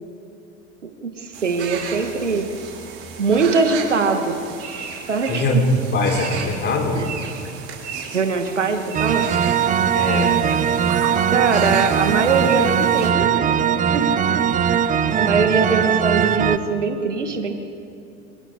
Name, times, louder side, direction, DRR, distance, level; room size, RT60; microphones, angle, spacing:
voice 1, 0.8-2.5 3.2-4.4 5.1-5.5 6.9-7.1 8.1-9.3 11.3-13.6 13.9-14.5 15.2-17.5, right 4 dB, 80° right, 6 dB, 1.9 m, -22 dB
sound 1, 1.3-13.1, right 6 dB, 40° right, 5.2 m, -34 dB
voice 2, 5.3-7.0 9.9-10.4, left 1 dB, 30° left, 0 dB, 4.3 m, -21 dB
sound 2, 8.9-16.6, right 8 dB, 20° right, 0.8 m, -20 dB
28.0 x 26.0 x 3.8 m, 2.6 s
figure-of-eight pair, 80°, 36 cm